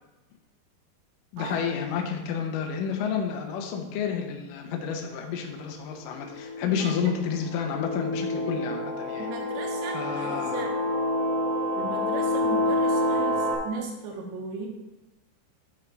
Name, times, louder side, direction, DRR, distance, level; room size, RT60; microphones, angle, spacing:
voice 1, 1.3-9.3 9.9-10.7, left 7 dB, 85° left, 2 dB, 1.9 m, -30 dB
sound 1, 5.2-5.4 6.1-13.5, left 1 dB, 65° left, 2.1 m, -28 dB
voice 2, 9.2-10.7 11.7-14.7, right 4 dB, 85° right, 1 dB, 3.3 m, -37 dB
12.0 x 4.6 x 4.0 m, 1.1 s
omnidirectional pair, 5.2 m